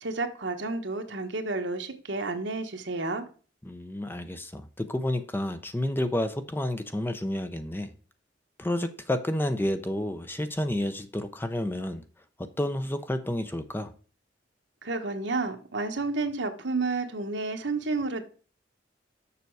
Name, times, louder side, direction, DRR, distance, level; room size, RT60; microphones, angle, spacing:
voice 1, 0.0-3.2 14.8-18.2, right 3 dB, 70° right, 6 dB, 1.2 m, -31 dB
voice 2, 3.6-7.9 8.6-12.0 12.6-13.9, left 1 dB, 10° left, 9 dB, 0.5 m, -30 dB
6.9 x 6.6 x 4.7 m, 0.39 s
head